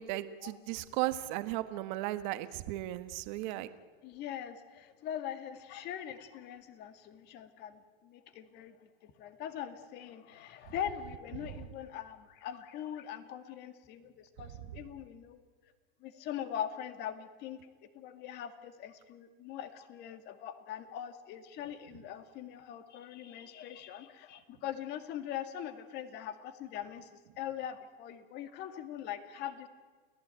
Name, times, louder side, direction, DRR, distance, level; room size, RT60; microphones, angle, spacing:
voice 1, 0.0-3.7, right 16 dB, 50° right, 11 dB, 1.4 m, -35 dB
voice 2, 4.0-15.4 16.0-17.6 17.9-29.7, left 10 dB, 35° left, 9 dB, 2.1 m, -42 dB
29.0 x 18.0 x 9.1 m, 1.4 s
supercardioid pair, 150°, 30 cm